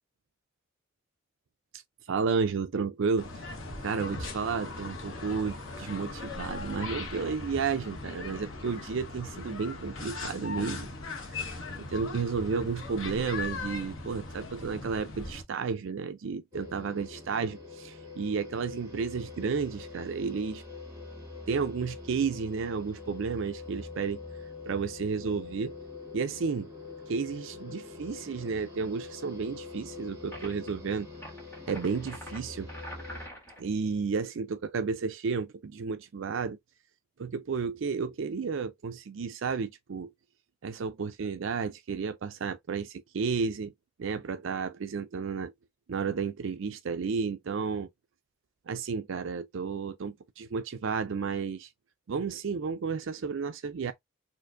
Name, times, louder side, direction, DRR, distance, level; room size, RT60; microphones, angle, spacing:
voice 1, 2.1-3.5 3.8-10.9 11.3-20.6 21.5-24.2 24.7-25.7 26.1-26.7 27.1-31.1 31.7-32.7 33.6-36.6 37.2-40.1 40.6-43.7 44.0-45.5 45.9-47.9 48.7-51.7 52.1-53.9, right 5 dB, 65° right, 0.4 m, -32 dB
sound 1, 3.2-15.4, left 3 dB, 75° left, 1.2 m, -39 dB
sound 2, 16.5-33.3, left 3 dB, 15° right, 1.8 m, -44 dB
sound 3, 30.3-30.7 31.1-33.7, equal, 10° left, 1.6 m, -45 dB
4.5 x 2.5 x 2.4 m
head